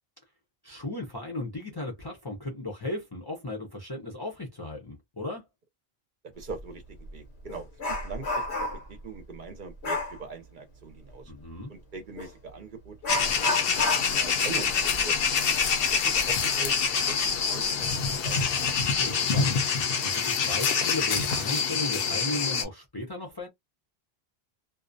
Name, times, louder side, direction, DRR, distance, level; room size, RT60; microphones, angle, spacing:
voice 1, 0.6-5.5 11.3-11.7 18.9-19.6 20.0-23.5, left 1 dB, 30° left, 0.5 m, -36 dB
voice 2, 6.2-8.4 8.7-11.3 11.7-13.9 14.2-15.6 15.9-17.9 18.2-18.4, right 4 dB, 55° right, 0.7 m, -42 dB
Dog, 6.5-6.6 7.0-9.0 9.8-10.2 12.2-12.3 13.0-16.3 16.6-16.7 17.3-17.4 18.0-18.4 18.8-19.0, left 2 dB, 90° left, 1.1 m, -32 dB
sound 1, 13.1-22.6, left 6 dB, 65° left, 0.8 m, -26 dB
2.3 x 2.1 x 2.5 m
omnidirectional pair, 1.1 m